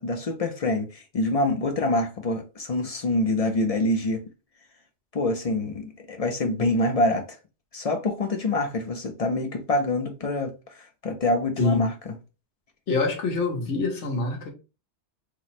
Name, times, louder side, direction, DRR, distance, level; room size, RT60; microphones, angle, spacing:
voice 1, 0.0-4.2 5.1-7.4 7.7-11.9, left 2 dB, 50° left, 0.4 m, -26 dB
voice 2, 11.6-11.9 12.9-14.5, left 3 dB, 80° left, 1.3 m, -25 dB
3.0 x 2.1 x 4.0 m
omnidirectional pair, 1.2 m